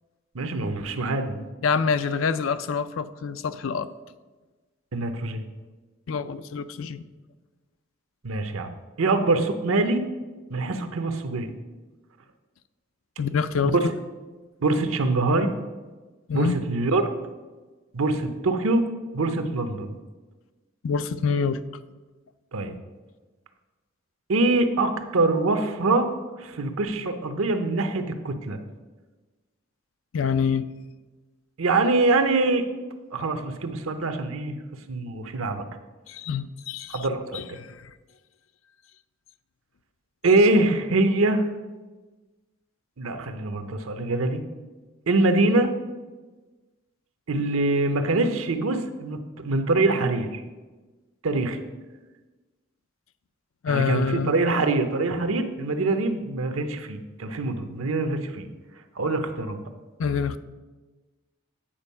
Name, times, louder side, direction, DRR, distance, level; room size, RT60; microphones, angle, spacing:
voice 1, 0.3-1.4 4.9-5.4 8.2-8.7 9.0-10.0 10.5-11.6 13.8-13.9 14.6-15.5 16.3-17.0 17.9-18.8 19.1-20.0 22.5-22.8 24.3-26.1 26.4-28.6 31.6-32.6 33.1-34.5 34.9-35.6 36.9-37.6 40.2-41.4 43.0-44.4 45.1-45.7 47.3-50.4 51.2-51.6 53.7-58.5 59.0-59.6, right 2 dB, 90° right, 8 dB, 0.8 m, -24 dB
voice 2, 1.6-3.9 6.1-7.0 13.2-13.7 16.3-16.6 20.8-21.6 30.1-30.7 36.1-37.1 37.3-37.8 53.6-54.3 60.0-60.4, left 6 dB, 75° left, 13 dB, 0.4 m, -26 dB
8.8 x 4.5 x 5.4 m, 1.3 s
head